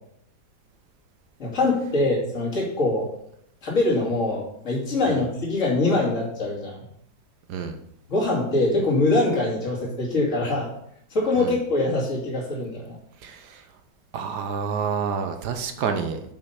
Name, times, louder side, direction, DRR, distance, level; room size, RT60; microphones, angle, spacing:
voice 1, 1.4-3.1 3.6-6.8 8.1-10.7 11.1-13.0, left 2 dB, 40° left, -4 dB, 2.9 m, -23 dB
voice 2, 13.2-13.7 14.1-16.2, right 6 dB, 65° right, 7 dB, 1.3 m, -28 dB
7.4 x 5.5 x 5.6 m, 0.74 s
omnidirectional pair, 2.1 m